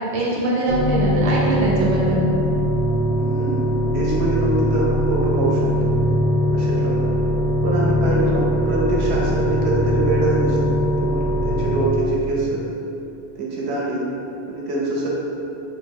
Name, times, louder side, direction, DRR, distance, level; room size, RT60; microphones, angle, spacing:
voice 1, 0.0-2.2 8.3-8.4, right 2 dB, 45° right, -5 dB, 0.5 m, -22 dB
sound 1, 0.7-11.9, equal, 55° left, 0.5 m, -21 dB
voice 2, 3.2-3.6 3.9-5.9 6.5-7.1 7.6-10.6 11.0-12.7 13.4-14.0 14.5-15.1, right 2 dB, 75° right, -5 dB, 0.8 m, -24 dB
2.8 x 2.0 x 3.5 m, 2.8 s
omnidirectional pair, 1.1 m